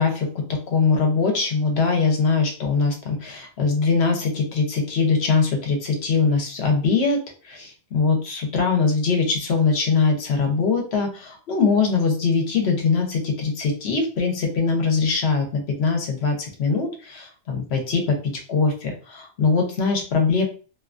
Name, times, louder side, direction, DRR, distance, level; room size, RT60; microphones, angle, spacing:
voice 1, 0.0-20.4, left 4 dB, 70° left, 2 dB, 1.0 m, -22 dB
2.6 x 2.3 x 2.4 m, 0.37 s
omnidirectional pair, 1.2 m